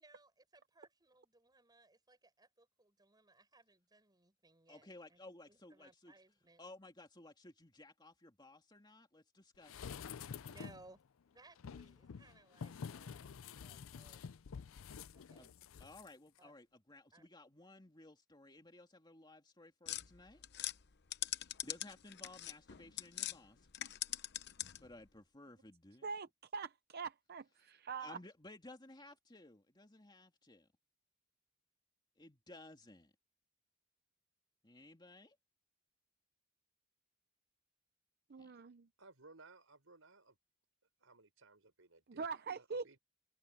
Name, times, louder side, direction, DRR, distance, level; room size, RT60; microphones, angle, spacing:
voice 1, 0.0-5.2 5.5-6.6 10.4-13.3 13.6-14.4 15.1-15.5 16.4-16.5 17.1-17.3, right 2 dB, 20° right, 7.2 m, -64 dB
voice 2, 4.7-6.1 6.6-9.9 15.4-15.5 15.8-20.4 21.6-23.7 24.8-26.1 28.0-30.7 32.2-33.1 34.6-35.4 38.4-38.5, left 2 dB, 20° left, 2.6 m, -57 dB
sound 1, 9.6-10.9 11.6-16.1 16.4-16.5, left 6 dB, 75° left, 0.5 m, -49 dB
sound 2, 19.9-23.4 23.7-24.9, left 13 dB, 55° left, 0.8 m, -42 dB
voice 3, 26.0-28.2 38.3-38.9 42.1-42.8, right 5 dB, 50° right, 0.6 m, -43 dB
voice 4, 39.0-40.4 41.0-42.3 42.5-43.0, right 3 dB, 75° right, 5.1 m, -61 dB
head